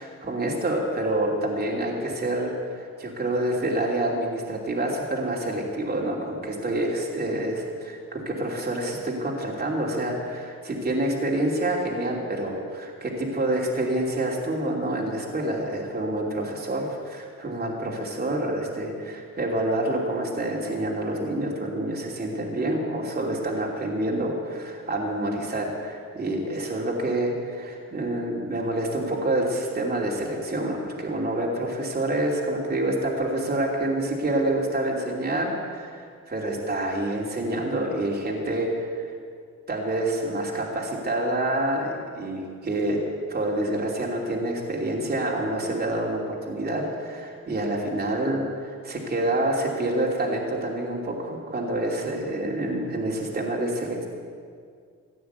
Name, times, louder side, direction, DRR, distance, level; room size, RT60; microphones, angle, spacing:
voice 1, 0.0-39.1 39.7-43.0 43.3-54.1, right 1 dB, 30° right, -2 dB, 2.9 m, -27 dB
15.5 x 9.3 x 8.1 m, 2.1 s
cardioid pair, 90°, 30 cm